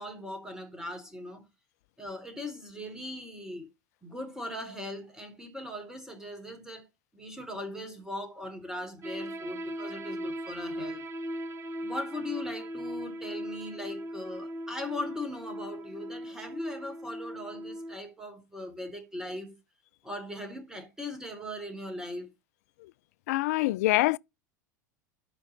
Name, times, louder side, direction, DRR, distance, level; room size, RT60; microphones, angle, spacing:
voice 1, 0.0-1.5 2.0-3.7 4.0-6.9 7.1-11.1 11.8-19.6 20.0-22.3, left 1 dB, 5° right, 3.3 m, -39 dB
sound 1, 9.0-18.0, equal, 30° right, 1.5 m, -38 dB
voice 2, 23.3-24.2, left 19 dB, 60° left, 0.4 m, -25 dB
12.5 x 4.7 x 4.0 m
figure-of-eight pair, 85°, 10 cm